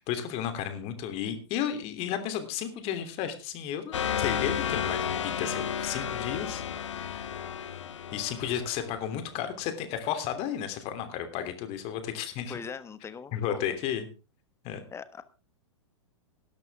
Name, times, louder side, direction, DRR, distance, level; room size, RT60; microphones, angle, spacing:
voice 1, 0.0-6.6 6.9-7.4 8.1-12.5 13.3-14.1 14.6-14.8, left 9 dB, 40° left, 8 dB, 3.1 m, -33 dB
sound 1, 3.9-9.3, left 8 dB, 70° left, 1.3 m, -32 dB
voice 2, 12.5-13.6 14.9-15.2, left 6 dB, 15° left, 13 dB, 1.4 m, -40 dB
17.5 x 12.0 x 3.6 m, 0.33 s
figure-of-eight pair, 105°, 16 cm